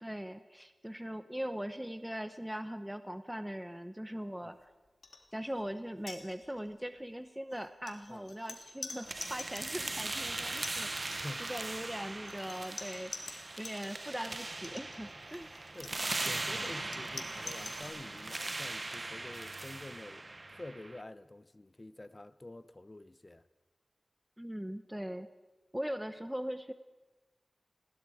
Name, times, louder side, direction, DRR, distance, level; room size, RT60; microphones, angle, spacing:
voice 1, 0.0-4.7 5.3-15.5 24.4-25.3 25.7-26.7, equal, 5° right, 0.8 m, -40 dB
sound 1, 5.0-5.2 5.5-5.7 6.0-6.7 7.5-13.8 14.5-17.8, left 3 dB, 80° left, 3.0 m, -47 dB
sound 2, 9.1-21.0, right 2 dB, 40° right, 0.7 m, -40 dB
voice 2, 15.7-23.4, left 2 dB, 30° left, 0.9 m, -48 dB
29.0 x 21.5 x 4.9 m
wide cardioid pair, 65°, 0 cm